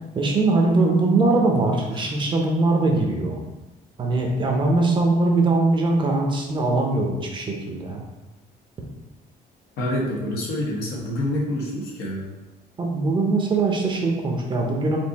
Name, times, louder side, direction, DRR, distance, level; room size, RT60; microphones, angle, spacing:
voice 1, 0.1-3.4 4.0-8.0 12.8-15.0, right 3 dB, 30° right, 1 dB, 0.7 m, -21 dB
voice 2, 9.8-12.3, left 1 dB, 90° left, -4 dB, 1.4 m, -27 dB
4.5 x 2.6 x 4.1 m, 1.1 s
cardioid pair, 145°, 16 cm